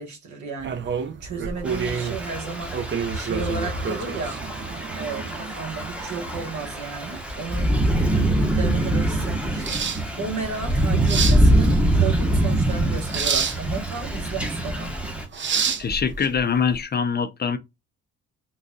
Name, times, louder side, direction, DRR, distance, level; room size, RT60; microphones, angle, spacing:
voice 1, 0.0-2.9 3.1-4.4 5.0-7.8 8.1-14.9, right 4 dB, 70° right, 1.2 m, -34 dB
sound 1, 0.6-16.8, right 6 dB, 40° right, 0.6 m, -30 dB
Thunder / Rain, 1.6-15.2, right 1 dB, 5° right, 0.8 m, -24 dB
voice 2, 15.8-17.6, left 6 dB, 35° left, 0.5 m, -23 dB
3.8 x 2.3 x 2.6 m
cardioid pair, 90°, 30 cm